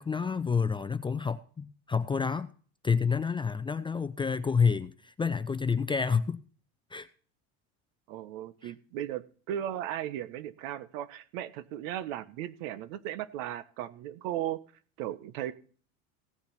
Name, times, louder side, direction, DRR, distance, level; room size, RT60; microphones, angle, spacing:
voice 1, 0.0-2.5 2.8-6.4 6.9-7.1 8.6-8.7, left 5 dB, 15° left, 0.5 m, -29 dB
voice 2, 8.1-14.6 15.0-15.5, right 11 dB, 75° right, 1.3 m, -36 dB
16.5 x 7.0 x 5.8 m
supercardioid pair, 130°, 39 cm